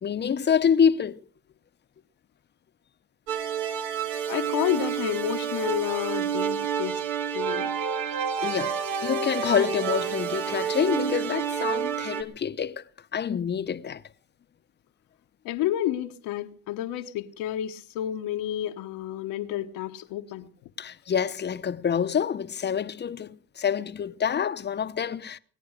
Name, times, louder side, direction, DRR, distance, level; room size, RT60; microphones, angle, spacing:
voice 1, 0.0-1.2 8.4-8.7 9.0-12.8 13.1-14.0 20.8-25.4, left 7 dB, 30° left, 0.8 m, -26 dB
sound 1, 3.3-12.2, right 7 dB, 90° right, 2.5 m, -29 dB
voice 2, 4.3-7.0 7.3-7.7 15.4-20.5, left 12 dB, 85° left, 1.3 m, -30 dB
22.5 x 9.4 x 6.5 m
cardioid pair, 115°, 34 cm